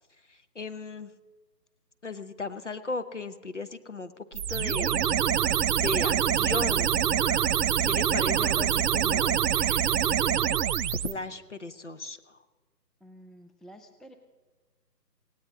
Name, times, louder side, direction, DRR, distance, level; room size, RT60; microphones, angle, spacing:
voice 1, 0.3-1.1 2.0-5.0 5.6-7.1 7.8-9.5 10.9-12.4, left 3 dB, 45° left, 11 dB, 0.8 m, -36 dB
sound 1, 4.3-11.1, right 9 dB, 70° right, 0.5 m, -25 dB
sound 2, 5.1-6.7 7.1-7.9 8.3-9.1 9.5-10.4, equal, 15° left, 5.0 m, -50 dB
voice 2, 13.0-14.2, right 1 dB, ahead, 7 dB, 0.4 m, -50 dB
18.0 x 17.5 x 3.7 m, 1.3 s
figure-of-eight pair, 170°, 50 cm